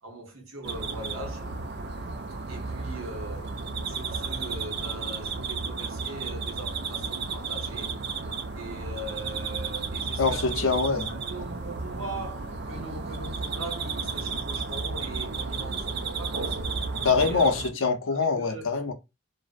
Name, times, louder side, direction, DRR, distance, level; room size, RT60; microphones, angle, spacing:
voice 1, 0.0-1.6 2.5-8.1 8.5-10.7 11.1-16.7 17.2-17.6 18.1-18.7, right 2 dB, 85° right, 0.9 m, -41 dB
sound 1, 0.6-17.7, right 4 dB, 50° right, 0.4 m, -33 dB
voice 2, 10.2-11.1 17.0-18.9, left 4 dB, 75° left, 0.5 m, -24 dB
2.6 x 2.0 x 2.4 m
head